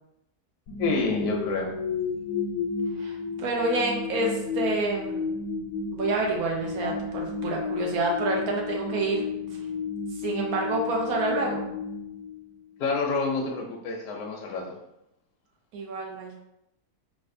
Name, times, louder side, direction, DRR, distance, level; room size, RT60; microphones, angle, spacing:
sound 1, 0.7-12.8, left 4 dB, 90° left, 1.1 m, -32 dB
voice 1, 0.8-1.7 12.8-14.8, left 4 dB, 70° left, 0 dB, 0.9 m, -28 dB
voice 2, 3.0-5.2 5.9-9.2 10.2-11.6 15.7-16.3, right 2 dB, 75° right, -1 dB, 1.1 m, -28 dB
4.0 x 2.4 x 2.5 m, 0.85 s
omnidirectional pair, 1.6 m